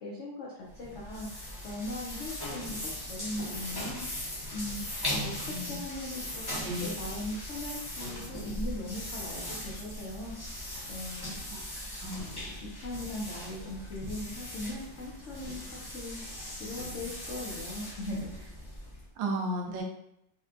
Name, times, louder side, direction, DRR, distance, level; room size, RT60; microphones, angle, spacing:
voice 1, 0.0-2.8 3.1-4.1 4.5-4.8 5.1-10.4 10.9-11.3 12.6-16.2 16.5-18.5, left 1 dB, 80° left, -4 dB, 0.6 m, -39 dB
sound 1, 0.6-19.1, left 1 dB, 25° left, 0.5 m, -39 dB
voice 2, 19.2-19.8, right 1 dB, 85° right, 1 dB, 1.3 m, -33 dB
4.1 x 2.2 x 2.5 m, 0.78 s
omnidirectional pair, 2.0 m